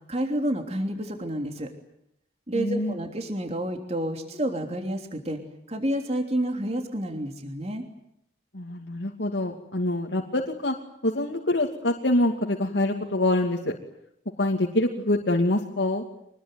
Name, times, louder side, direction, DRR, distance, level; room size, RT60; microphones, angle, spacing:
voice 1, 0.1-1.7 2.5-5.4 5.7-7.8, right 1 dB, 35° right, 4 dB, 3.2 m, -29 dB
voice 2, 2.5-3.0 8.5-10.8 11.0-13.7 14.4-16.0, left 1 dB, 80° left, 1 dB, 2.6 m, -25 dB
25.0 x 21.0 x 9.5 m, 0.75 s
head